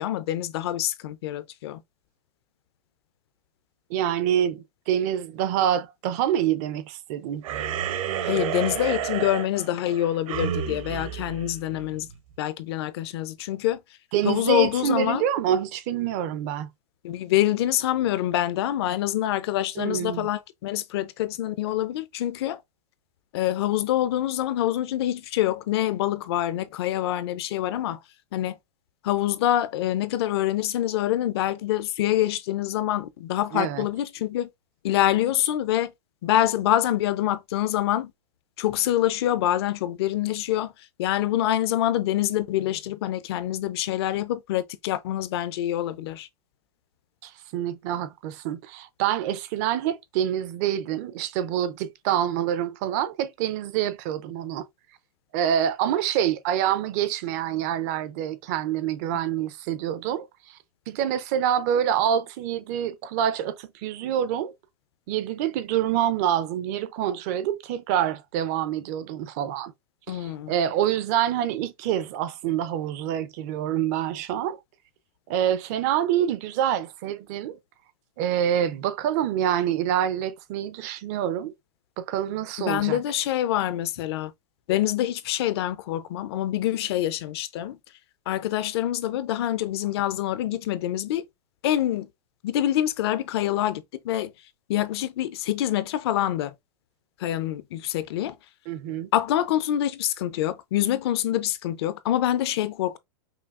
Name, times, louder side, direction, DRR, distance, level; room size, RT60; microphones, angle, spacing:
voice 1, 0.0-1.8 8.2-12.1 12.4-13.8 14.2-15.3 17.0-22.6 23.3-28.0 28.3-28.6 29.0-34.5 34.8-35.9 36.2-38.1 38.6-40.7 41.0-46.3 70.1-70.5 82.6-84.3 84.7-87.8 88.3-91.3 91.6-92.1 92.4-94.3 94.7-96.5 97.2-98.4 99.1-103.0, left 13 dB, 40° left, 0.4 m, -26 dB
voice 2, 3.9-7.4 14.1-16.7 19.8-20.3 33.5-33.8 47.2-54.7 55.3-60.6 60.9-64.5 65.1-69.7 70.1-74.6 75.3-77.6 78.2-81.5 82.0-83.0 98.7-99.1, right 10 dB, 25° right, 0.4 m, -26 dB
sound 1, 7.4-12.2, right 9 dB, 60° right, 0.7 m, -30 dB
5.6 x 2.2 x 2.4 m
supercardioid pair, 170°, 20 cm